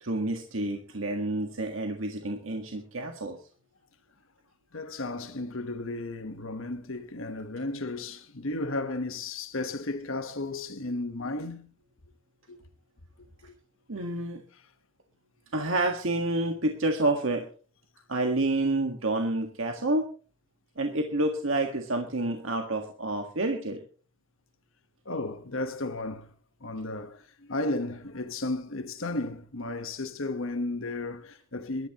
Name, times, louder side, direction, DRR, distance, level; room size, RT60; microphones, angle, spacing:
voice 1, 0.0-3.4 13.9-14.4 15.5-17.5 18.1-20.1 20.7-23.8, right 2 dB, 75° right, 1.7 m, -29 dB
voice 2, 4.7-11.7 12.5-12.7 13.4-13.5 25.0-26.3 26.6-31.9, left 2 dB, 75° left, 1.3 m, -34 dB
21.5 x 13.0 x 3.0 m
head